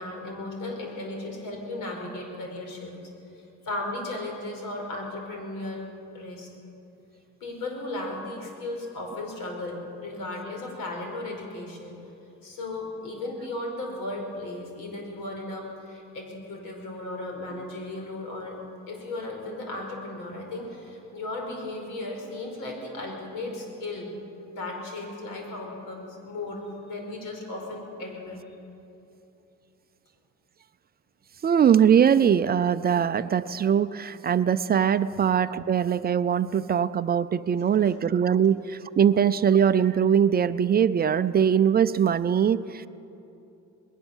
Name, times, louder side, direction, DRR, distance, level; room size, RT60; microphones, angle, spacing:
voice 1, 0.0-2.9 3.3-5.8 6.1-6.5 7.4-12.0 12.4-18.6 18.9-24.1 24.5-28.4 35.1-35.2 37.8-38.0, left 2 dB, 90° left, 1 dB, 5.0 m, -36 dB
voice 2, 31.4-42.9, right 8 dB, 30° right, 13 dB, 0.4 m, -22 dB
20.5 x 18.0 x 7.2 m, 2.9 s
cardioid pair, 135°, 32 cm